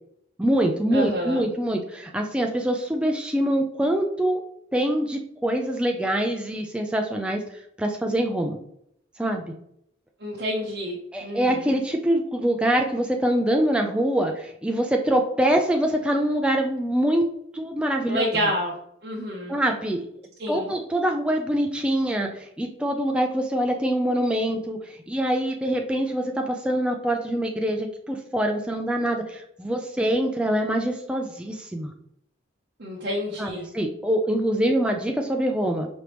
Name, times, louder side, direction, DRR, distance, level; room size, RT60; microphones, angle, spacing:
voice 1, 0.4-4.4 4.7-7.4 7.8-8.6 9.2-9.5 11.1-18.5 19.5-20.0 20.5-31.9 33.4-35.9, right 1 dB, 5° right, 2 dB, 0.3 m, -24 dB
voice 2, 0.9-1.4 10.2-11.7 18.1-18.8 19.0-19.6 20.4-20.7 32.8-33.7, equal, 55° right, -3 dB, 0.7 m, -28 dB
5.1 x 3.3 x 2.9 m, 0.72 s
head